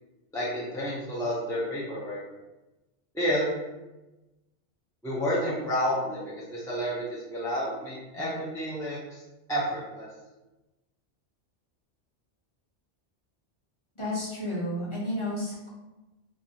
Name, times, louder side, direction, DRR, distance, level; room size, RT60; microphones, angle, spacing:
voice 1, 0.3-2.2 3.1-3.5 5.0-6.2 6.5-7.0 7.3-9.2 9.5-10.1, equal, 5° left, -7 dB, 0.4 m, -30 dB
voice 2, 13.9-15.7, left 1 dB, 30° left, -7 dB, 0.8 m, -31 dB
3.0 x 2.6 x 2.8 m, 1.1 s
omnidirectional pair, 1.2 m